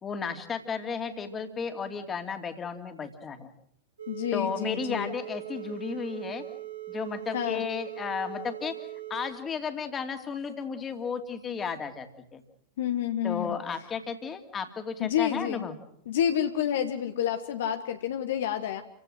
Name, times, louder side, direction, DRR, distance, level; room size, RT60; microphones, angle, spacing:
voice 1, 0.0-3.5 4.3-6.4 6.9-8.8 9.1-12.4 13.2-15.8, left 6 dB, 20° left, 7 dB, 2.8 m, -34 dB
sound 1, 4.0-9.3, right 15 dB, 70° right, 4.2 m, -40 dB
voice 2, 4.1-5.2 7.3-7.7 12.8-13.6 15.0-15.7 16.1-18.8, left 10 dB, 60° left, 7 dB, 1.5 m, -29 dB
29.0 x 16.5 x 7.8 m, 0.71 s
figure-of-eight pair, 90°, 0 cm